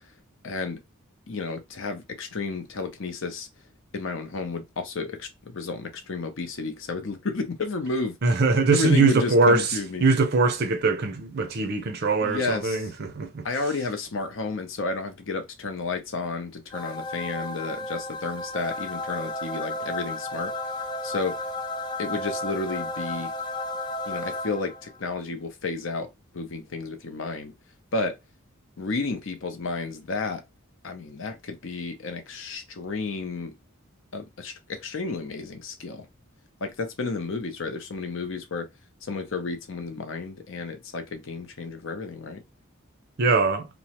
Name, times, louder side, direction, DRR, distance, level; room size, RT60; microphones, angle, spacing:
voice 1, 0.4-0.8 1.3-3.5 3.9-8.4 8.7-10.1 12.2-12.9 13.4-20.5 21.0-21.4 22.0-23.3 24.1-26.1 26.3-27.5 27.9-28.2 28.8-30.4 30.8-33.5 34.1-36.1 36.6-38.7 39.0-42.4, left 3 dB, 60° left, 0.6 m, -32 dB
voice 2, 8.2-9.7 10.0-13.5 43.2-43.7, right 3 dB, 45° right, 0.5 m, -22 dB
sound 1, 16.7-25.0, left 2 dB, 20° left, 0.3 m, -33 dB
2.9 x 2.1 x 2.8 m
head